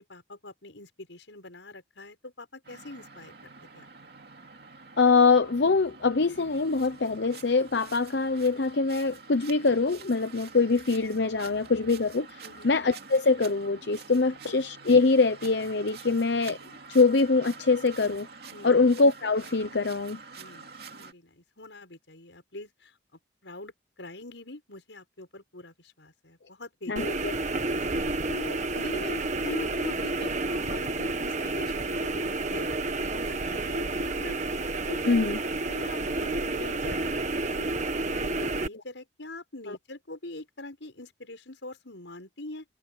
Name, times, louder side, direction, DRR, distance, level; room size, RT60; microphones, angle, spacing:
voice 1, 0.0-3.9 12.4-12.7 14.3-14.4 18.5-18.8 20.4-20.7 20.9-23.0 23.4-27.1 27.6-34.4 34.9-35.0 35.7-37.2 37.5-37.7 38.0-42.6, left 2 dB, 90° left, 6.3 m, -43 dB
sound 1, 2.6-21.1, right 4 dB, 60° right, 2.7 m, -47 dB
voice 2, 5.0-16.6 16.9-18.3 18.6-20.2 26.9-27.3 35.1-35.4 39.7-39.8, left 4 dB, 70° left, 0.8 m, -24 dB
sound 2, 27.0-38.7, right 2 dB, 40° right, 1.5 m, -30 dB
head